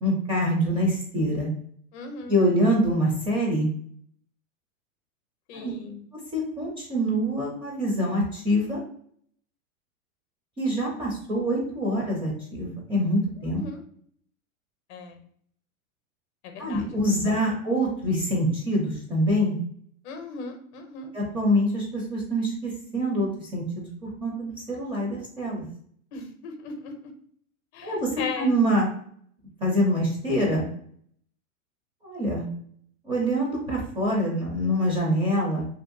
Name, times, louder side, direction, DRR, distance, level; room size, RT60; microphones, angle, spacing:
voice 1, 0.0-1.5 2.3-3.7 5.5-5.8 6.3-8.8 10.6-13.6 16.6-19.6 21.1-25.6 27.8-28.9 29.6-30.6 32.0-32.5 33.0-35.7, equal, 15° right, -3 dB, 0.5 m, -25 dB
voice 2, 1.9-2.4 5.5-6.0 13.6-13.8 14.9-15.2 16.4-17.0 20.0-21.1 26.1-26.9 27.7-28.5, left 4 dB, 50° left, 5 dB, 0.6 m, -37 dB
2.7 x 2.4 x 2.5 m, 0.63 s
supercardioid pair, 135°, 41 cm